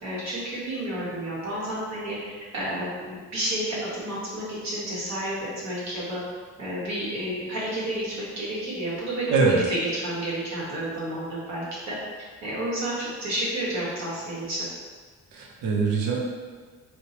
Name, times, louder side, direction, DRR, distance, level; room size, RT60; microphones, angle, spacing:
voice 1, 0.0-2.2 2.5-6.2 6.6-9.3 9.7-11.9 12.4-14.6, right 1 dB, 65° right, -6 dB, 1.4 m, -30 dB
voice 2, 15.3-16.2, right 4 dB, 85° right, 0 dB, 0.7 m, -22 dB
4.4 x 2.1 x 2.8 m, 1.5 s
cardioid pair, 90°, 30 cm